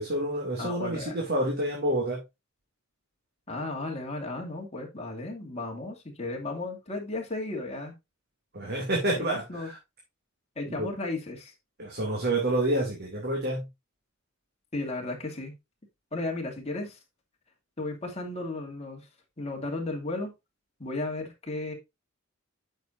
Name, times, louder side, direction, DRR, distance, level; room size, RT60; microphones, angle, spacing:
voice 1, 0.0-2.2 8.5-9.7 10.8-10.9 11.8-13.7, right 1 dB, 50° right, -2 dB, 2.6 m, -28 dB
voice 2, 0.6-1.2 3.5-7.9 9.0-9.7 10.6-11.5 14.7-15.5 16.1-17.0 17.8-19.1 19.4-20.3 20.8-21.7, left 2 dB, 30° left, 1 dB, 2.4 m, -34 dB
9.1 x 6.8 x 2.6 m, 0.22 s
head